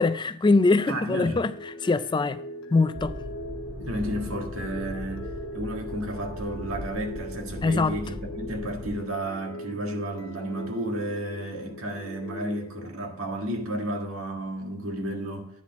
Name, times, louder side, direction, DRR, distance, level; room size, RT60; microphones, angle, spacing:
voice 1, 0.0-1.5 1.8-2.4 2.7-3.1 7.6-8.0, left 3 dB, 20° left, 0.3 m, -22 dB
voice 2, 0.9-1.4 3.8-15.5, right 1 dB, 85° right, 1.8 m, -32 dB
Sweet thang (instrumental edit), 1.3-12.9, left 1 dB, 70° left, 0.9 m, -41 dB
sound 1, 3.0-9.0, equal, 10° right, 0.7 m, -39 dB
9.6 x 4.3 x 7.1 m
head